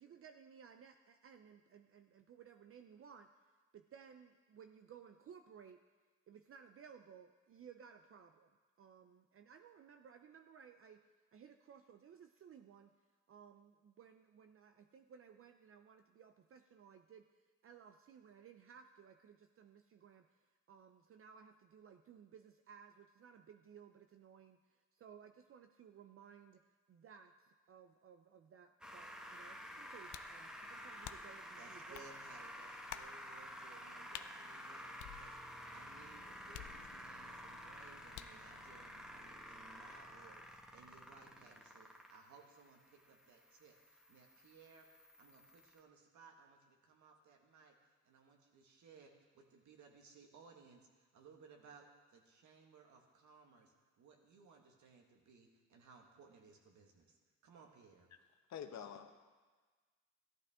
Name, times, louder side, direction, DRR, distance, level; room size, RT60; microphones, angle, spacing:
voice 1, 0.0-3.3 3.7-5.8 6.3-8.5 8.8-11.0 11.3-12.9 13.3-17.3 17.6-20.4 20.7-32.1, right 7 dB, 45° right, 6 dB, 0.6 m, -59 dB
sound 1, 28.8-45.8, equal, 5° right, 1.4 m, -52 dB
sound 2, 30.1-30.4 31.0-31.4 31.9-32.1 32.9-33.2 34.1-34.3 35.0-35.6 36.5-37.2 38.1-38.5, left 13 dB, 85° left, 0.5 m, -50 dB
voice 2, 31.6-57.2 57.4-58.1, right 5 dB, 70° right, 2 dB, 1.8 m, -62 dB
voice 3, 58.5-59.1, left 8 dB, 65° left, 7 dB, 1.0 m, -47 dB
14.0 x 12.0 x 3.7 m, 1.4 s
cardioid pair, 90°, 30 cm